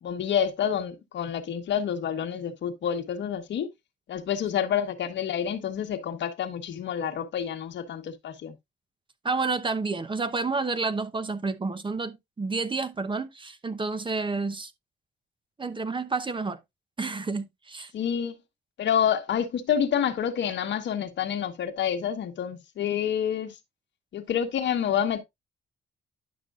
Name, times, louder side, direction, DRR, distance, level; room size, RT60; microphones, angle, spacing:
voice 1, 0.0-3.7 4.1-8.5 17.9-18.4 18.8-23.6 24.1-25.2, left 8 dB, 65° left, 1.2 m, -28 dB
voice 2, 9.2-14.7 15.6-16.6 17.0-17.9, right 4 dB, 25° right, 0.8 m, -30 dB
10.5 x 6.0 x 2.4 m
cardioid pair, 90°, 20 cm